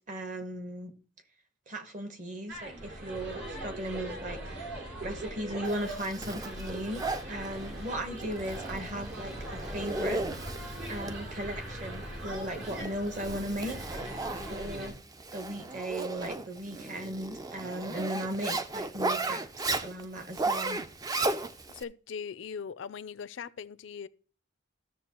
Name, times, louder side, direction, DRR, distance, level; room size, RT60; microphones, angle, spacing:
voice 1, 0.1-0.9 1.7-4.4 5.0-10.3 10.9-13.8 14.5-14.9 15.3-20.8, right 1 dB, 40° right, 1.0 m, -37 dB
sound 1, 2.5-14.9, right 1 dB, 70° right, 2.8 m, -40 dB
Zipper (clothing), 5.7-21.8, right 2 dB, 20° right, 0.3 m, -36 dB
voice 2, 21.7-24.1, left 6 dB, 70° left, 0.4 m, -40 dB
13.5 x 6.7 x 2.9 m
head